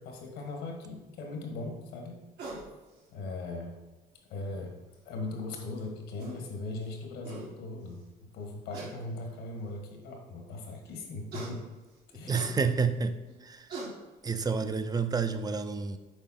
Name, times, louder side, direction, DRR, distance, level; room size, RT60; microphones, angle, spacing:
voice 1, 0.0-2.2 3.1-3.7 4.3-4.7 5.0-8.0 8.3-11.6 12.1-12.4, left 2 dB, 85° left, 2 dB, 1.6 m, -39 dB
sound 1, 2.4-2.7 4.1-4.2 5.8-5.9 6.2-6.4 6.9-7.0 7.2-7.5 8.7-8.9 9.7-9.8 11.3-11.5 12.3-12.5 13.3-13.4 13.7-13.9, right 3 dB, 75° right, 2.0 m, -40 dB
voice 2, 12.3-13.7 14.2-16.0, right 5 dB, 20° right, 10 dB, 0.5 m, -29 dB
7.2 x 4.9 x 4.3 m, 1.2 s
cardioid pair, 110°, 17 cm